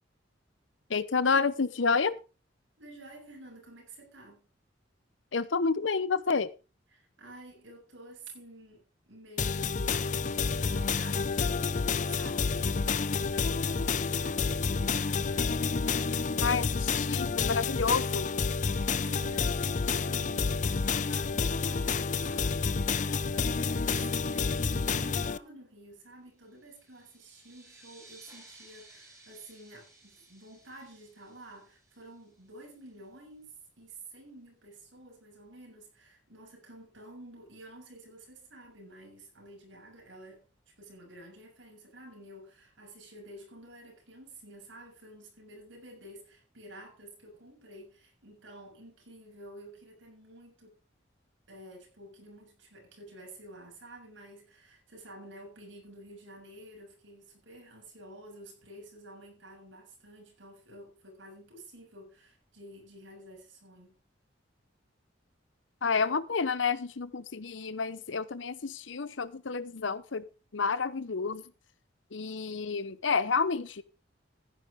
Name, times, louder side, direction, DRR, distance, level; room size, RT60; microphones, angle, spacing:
voice 1, 0.9-2.1 5.3-6.5 16.4-18.3 65.8-70.3 70.5-71.4 72.1-73.8, left 5 dB, 80° left, 0.8 m, -29 dB
voice 2, 2.8-4.4 6.9-15.7 18.9-20.6 20.9-40.4 40.8-50.8 51.5-63.9, right 1 dB, 80° right, 7.0 m, -50 dB
sound 1, 9.4-25.4, left 5 dB, 40° left, 0.5 m, -29 dB
sound 2, 26.5-32.7, right 2 dB, 15° right, 6.8 m, -57 dB
15.5 x 10.0 x 3.6 m
head